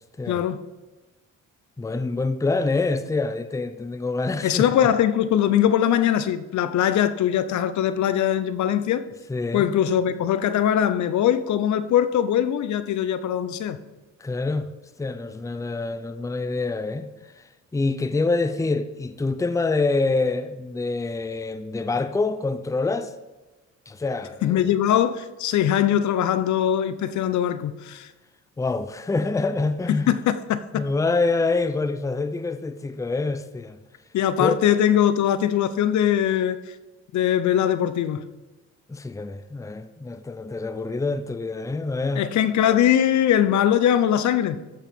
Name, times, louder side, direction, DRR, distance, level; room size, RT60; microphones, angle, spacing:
voice 1, 0.3-0.6 4.4-9.1 9.5-13.8 24.4-28.1 29.9-30.8 34.1-36.6 37.1-38.2 42.2-44.6, left 10 dB, 70° left, 0.7 m, -21 dB
voice 2, 1.8-4.7 9.3-9.7 14.2-14.7 15.0-17.1 17.4-17.5 17.7-23.1 23.9-24.7 28.6-30.1 30.7-33.8 34.4-34.6 38.9-42.2, left 3 dB, 10° left, 0.6 m, -26 dB
13.5 x 4.7 x 5.2 m
cardioid pair, 90°, 30 cm